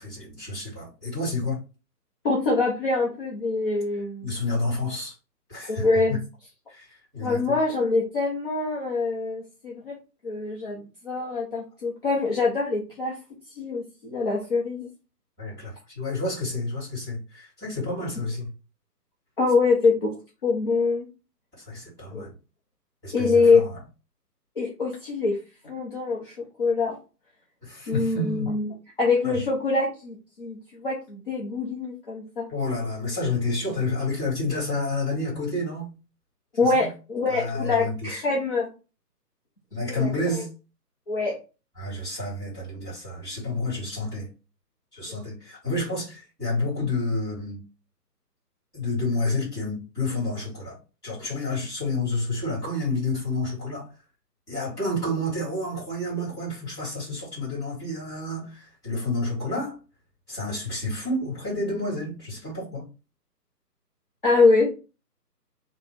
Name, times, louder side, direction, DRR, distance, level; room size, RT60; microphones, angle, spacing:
voice 1, 0.0-1.6 4.2-5.1 5.5-6.2 6.7-7.6 15.4-18.5 21.6-22.3 23.0-23.7 27.6-28.5 29.2-29.4 32.5-35.9 36.6-36.9 37.3-38.2 39.7-40.5 41.8-44.3 44.9-47.6 48.7-53.9 54.5-59.8 60.3-62.8, left 2 dB, 5° left, 2.0 m, -30 dB
voice 2, 2.2-4.3 5.7-6.2 7.2-10.0 10.2-13.2 13.5-14.9 19.4-20.1 20.4-21.1 22.1-22.2 23.1-23.6 24.6-25.4 25.6-27.0 27.9-28.7 29.0-32.5 36.6-38.7 40.0-40.1 41.1-41.3 64.2-64.7, left 3 dB, 35° left, 0.8 m, -24 dB
3.6 x 2.2 x 4.4 m
figure-of-eight pair, 150°, 48 cm